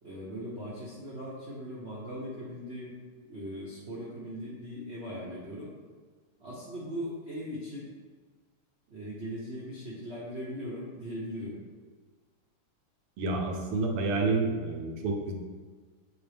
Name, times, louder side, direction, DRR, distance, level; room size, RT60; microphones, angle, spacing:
voice 1, 0.0-3.0 3.3-5.7 6.4-7.9 8.9-11.6, equal, 50° right, -7 dB, 0.8 m, -39 dB
voice 2, 13.2-15.3, right 3 dB, 85° right, 2 dB, 1.7 m, -29 dB
6.8 x 4.0 x 3.4 m, 1.5 s
omnidirectional pair, 2.4 m